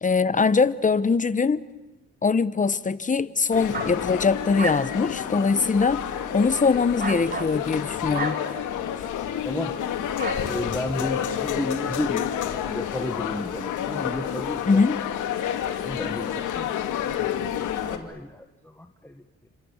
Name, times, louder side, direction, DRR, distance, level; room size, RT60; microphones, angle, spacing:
voice 1, 0.0-1.7 2.2-6.0 6.3-8.4 14.7-15.0, left 4 dB, 25° left, 1.2 m, -22 dB
sound 1, 3.5-18.0, left 9 dB, 80° left, 2.6 m, -29 dB
sound 2, 3.7-9.2 9.6-9.9 10.2-10.7, right 4 dB, 30° right, 1.8 m, -36 dB
voice 2, 9.5-9.8 10.4-12.3 12.7-14.8 15.7-19.5, left 1 dB, 5° left, 1.7 m, -33 dB
30.0 x 26.0 x 7.4 m
cardioid pair, 90°, 30 cm